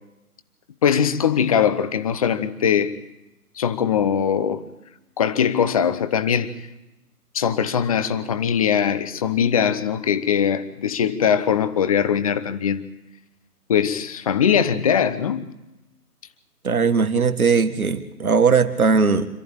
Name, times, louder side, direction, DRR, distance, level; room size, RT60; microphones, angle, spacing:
voice 1, 0.8-2.9 3.6-4.6 5.2-6.5 7.3-12.9 13.7-15.5, left 8 dB, 25° left, 0.9 m, -21 dB
voice 2, 16.6-19.3, right 5 dB, 65° right, 2.0 m, -19 dB
27.0 x 14.0 x 9.0 m
figure-of-eight pair, 140°, 46 cm